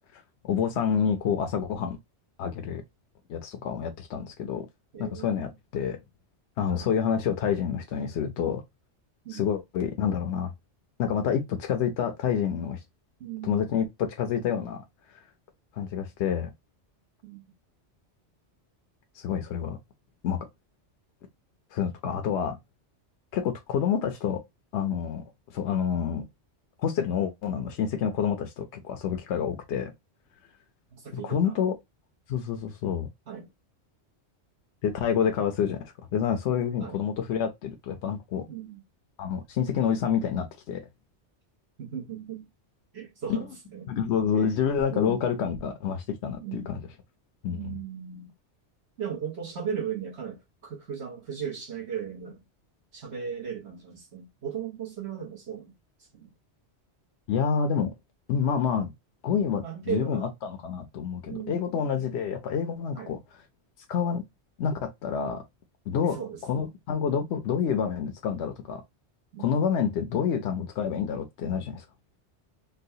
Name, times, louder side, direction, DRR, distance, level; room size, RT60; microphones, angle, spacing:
voice 1, 0.4-2.0 2.4-2.8 3.3-4.7 5.0-6.0 6.6-8.6 9.3-10.5 11.0-12.8 13.4-13.9 14.2-14.8 15.7-16.5 19.2-19.8 20.2-20.4 21.7-22.6 23.3-24.4 24.7-25.2 25.5-26.2 26.8-29.9 31.1-31.7 32.3-33.1 34.8-38.5 39.2-40.9 43.9-46.8 47.4-47.8 57.3-57.9 58.3-58.9 59.2-63.2 63.9-64.2 64.6-65.4 65.9-66.2 66.4-68.8 69.4-71.8, left 7 dB, 75° left, 0.9 m, -28 dB
voice 2, 4.9-5.5 6.7-6.9 9.2-9.5 13.2-13.7 17.2-17.4 30.9-31.6 33.3-33.5 36.8-37.0 38.5-38.8 41.8-42.5 42.9-43.9 44.9-45.2 46.4-46.8 47.5-48.3 49.0-52.4 52.9-55.7 56.1-56.3 59.6-60.3 61.3-61.8 62.9-63.1 66.0-66.7 67.1-67.2 69.3-69.6, right 8 dB, 70° right, 1.3 m, -37 dB
4.0 x 2.2 x 2.7 m
omnidirectional pair, 1.2 m